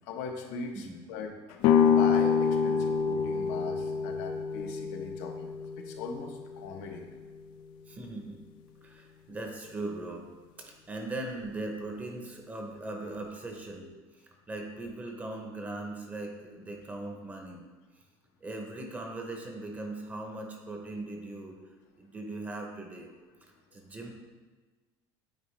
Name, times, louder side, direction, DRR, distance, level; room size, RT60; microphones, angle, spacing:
voice 1, 0.0-7.0 13.8-13.9, left 4 dB, 90° left, 3 dB, 0.8 m, -40 dB
sound 1, 1.6-7.4, left 7 dB, 55° left, 0.4 m, -27 dB
voice 2, 7.9-8.4 8.8-10.3 10.6-13.9 14.5-17.7 18.4-21.5 22.0-23.1 23.7-24.1, right 2 dB, 15° right, 2 dB, 0.7 m, -39 dB
8.5 x 4.1 x 3.1 m, 1.3 s
cardioid pair, 170°, 10 cm